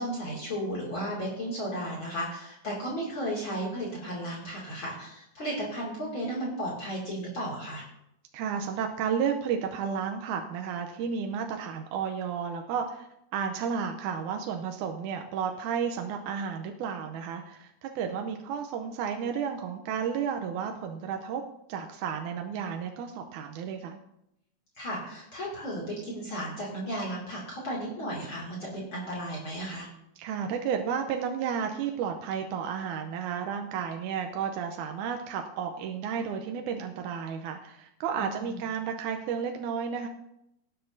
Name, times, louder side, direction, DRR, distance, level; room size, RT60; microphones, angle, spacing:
voice 1, 0.0-7.9 24.8-29.9 38.1-38.6, equal, 40° left, -4 dB, 3.1 m, -34 dB
voice 2, 8.3-21.4 21.7-24.0 30.2-40.1, right 7 dB, 85° right, 4 dB, 2.2 m, -32 dB
18.0 x 9.0 x 2.7 m, 0.80 s
omnidirectional pair, 3.4 m